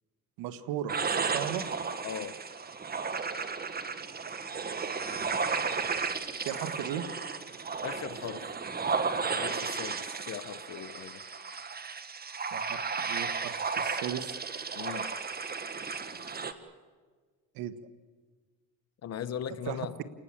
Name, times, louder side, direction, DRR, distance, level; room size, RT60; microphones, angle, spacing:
voice 1, 0.4-1.7 6.4-7.0 12.5-14.4 17.5-17.7 19.7-19.8, right 10 dB, 75° right, 12 dB, 1.7 m, -36 dB
sound 1, 0.9-16.5, right 5 dB, 25° right, 1.7 m, -34 dB
voice 2, 2.0-2.4 7.8-8.5 9.3-11.2 14.7-15.1 19.0-19.9, left 9 dB, 45° left, 13 dB, 1.3 m, -39 dB
29.5 x 19.0 x 7.6 m, 1.5 s
supercardioid pair, 95°, 36 cm